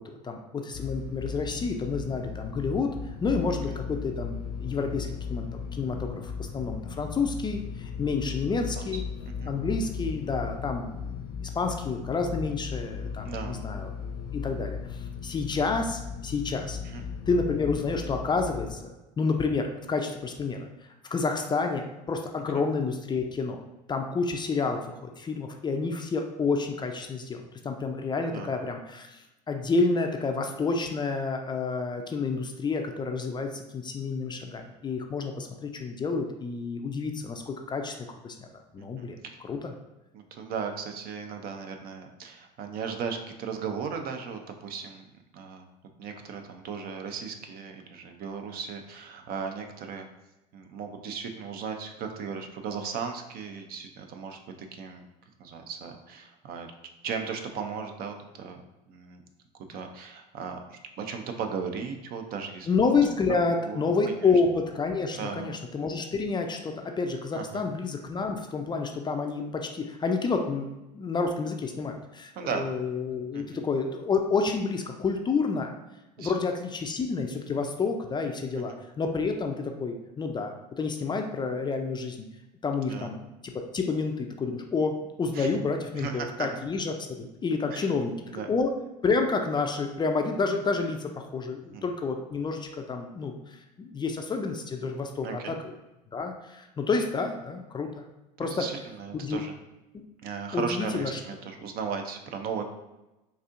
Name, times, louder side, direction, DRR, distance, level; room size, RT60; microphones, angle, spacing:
voice 1, 0.2-2.9 3.2-5.5 5.7-9.0 9.4-13.9 14.3-16.8 17.3-20.7 21.1-23.6 23.9-29.2 29.5-37.9 38.2-38.5 38.7-39.2 39.4-39.7 62.7-70.7 70.9-75.7 76.2-80.5 80.8-82.3 82.6-88.7 89.0-95.7 96.1-98.1 98.4-98.5 99.1-99.4 99.9-100.0 100.5-101.2, left 4 dB, 20° left, 4 dB, 0.4 m, -29 dB
sound 1, 0.7-18.8, left 6 dB, 60° left, 0.6 m, -37 dB
voice 2, 13.2-13.7 16.8-17.0 28.3-28.5 39.0-39.4 40.1-45.1 45.3-45.7 46.0-50.1 50.5-55.0 55.4-56.7 57.0-58.6 58.9-59.2 59.7-62.7 63.4-64.3 65.1-65.6 67.3-67.7 72.4-72.6 73.3-73.6 76.2-76.3 78.7-78.8 82.8-83.1 85.3-85.5 86.0-86.5 87.7-87.9 88.3-88.5 91.7-91.8 95.2-95.6 98.4-99.5 100.2-102.7, right 6 dB, 45° right, 5 dB, 0.6 m, -36 dB
4.1 x 2.6 x 2.5 m, 0.98 s
hypercardioid pair, 85°, 21 cm